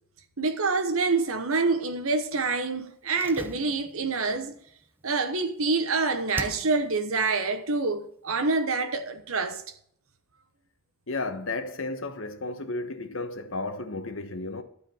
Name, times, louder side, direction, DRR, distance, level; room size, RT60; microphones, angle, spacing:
voice 1, 0.4-4.6 5.0-9.6, right 3 dB, 75° right, 1.1 m, -26 dB
Slam, 3.1-5.9 6.3-7.1 7.3-7.4, right 1 dB, 10° right, 0.6 m, -42 dB
voice 2, 11.1-14.6, left 2 dB, 65° left, 1.3 m, -33 dB
12.0 x 5.1 x 8.6 m
head